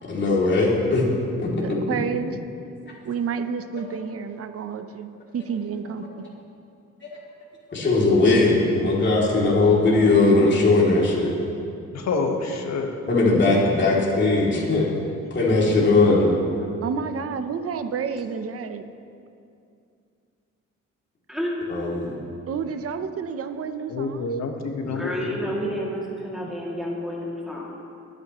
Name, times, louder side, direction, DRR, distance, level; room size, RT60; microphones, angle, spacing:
voice 1, 0.1-1.0 1.4-1.8 3.7-3.8 7.0-7.1 7.7-11.3 13.1-14.9 15.3-16.4 21.7-22.2 24.8-25.0, left 3 dB, 40° left, -5 dB, 3.0 m, -19 dB
voice 2, 1.6-2.4 3.0-6.0 8.2-8.4 16.8-18.8 22.5-24.4, right 6 dB, 50° right, 9 dB, 0.9 m, -30 dB
voice 3, 11.9-12.9 23.9-25.5, left 3 dB, 65° left, 3 dB, 1.5 m, -28 dB
voice 4, 21.3-21.7 24.9-27.7, equal, ahead, -5 dB, 2.6 m, -30 dB
22.5 x 9.5 x 3.1 m, 2.5 s
cardioid pair, 90°, 30 cm